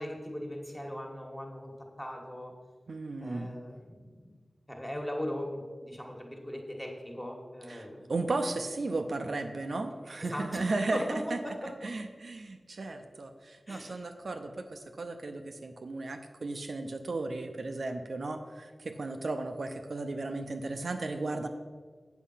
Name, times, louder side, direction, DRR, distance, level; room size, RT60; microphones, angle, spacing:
voice 1, 0.0-2.5 3.2-4.4 4.7-8.1 10.2-11.9 13.7-14.0, left 1 dB, 10° left, 0 dB, 1.6 m, -39 dB
voice 2, 2.9-3.5 7.7-11.4 11.8-21.5, right 2 dB, 65° right, 5 dB, 0.6 m, -35 dB
8.3 x 6.6 x 5.7 m, 1.5 s
wide cardioid pair, 95°, 0 cm